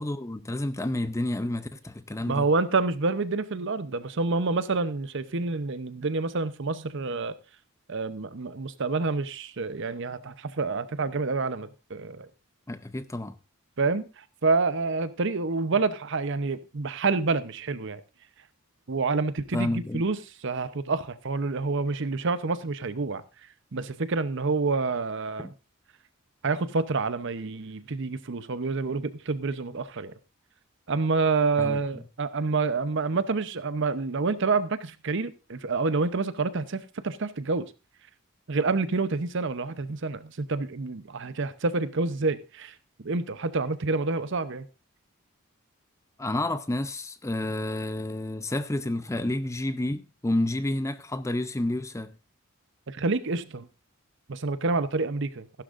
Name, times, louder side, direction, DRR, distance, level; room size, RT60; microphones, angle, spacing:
voice 1, 0.0-2.5 12.7-13.3 19.5-20.0 25.4-25.5 31.6-31.8 46.2-52.1, left 1 dB, 15° left, 0.5 m, -30 dB
voice 2, 2.3-7.4 7.9-12.3 13.8-18.0 18.9-20.2 20.4-23.2 23.7-25.5 26.4-30.1 30.9-37.7 38.5-42.7 43.0-44.7 52.9-53.7 54.3-55.5, right 3 dB, 60° right, 0.8 m, -28 dB
15.0 x 11.5 x 2.5 m
head